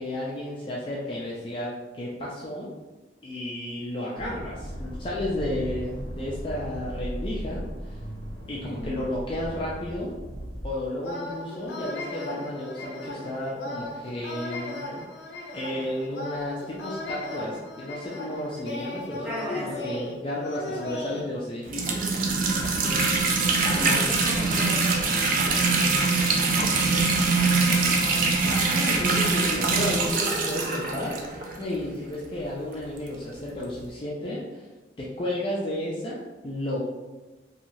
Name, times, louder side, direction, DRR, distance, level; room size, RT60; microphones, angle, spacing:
voice 1, 0.0-2.7 3.2-8.0 8.5-10.1 10.6-14.9 15.5-22.2 23.6-24.2 28.4-31.2 31.6-34.7 35.0-36.8, left 1 dB, 30° left, -5 dB, 0.3 m, -33 dB
Accelerating revving vroom, 4.2-10.7, equal, 85° right, 1.2 m, -37 dB
voice 2, 8.6-8.9 19.2-19.8 22.6-23.1 23.6-28.1, left 1 dB, ahead, -7 dB, 0.7 m, -38 dB
sound 1, 11.0-21.2, left 2 dB, 85° left, 0.5 m, -36 dB
sound 2, 21.7-31.7 32.4-32.5 32.7-32.8 33.8-33.9, right 3 dB, 50° right, 0.4 m, -23 dB
3.0 x 2.3 x 2.6 m, 1.2 s
head